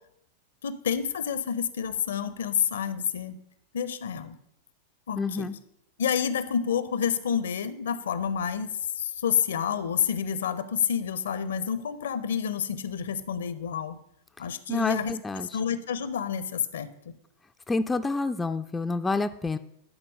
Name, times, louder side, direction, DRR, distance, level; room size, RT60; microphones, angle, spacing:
voice 1, 0.6-3.3 3.7-4.4 5.1-5.5 6.0-14.0 14.4-15.1 15.5-16.9, left 8 dB, 65° left, 15 dB, 0.5 m, -29 dB
voice 2, 5.2-5.6 14.7-15.5 17.7-19.6, left 3 dB, 10° left, 9 dB, 0.3 m, -28 dB
11.0 x 4.3 x 5.4 m, 0.77 s
figure-of-eight pair, 90°, 0 cm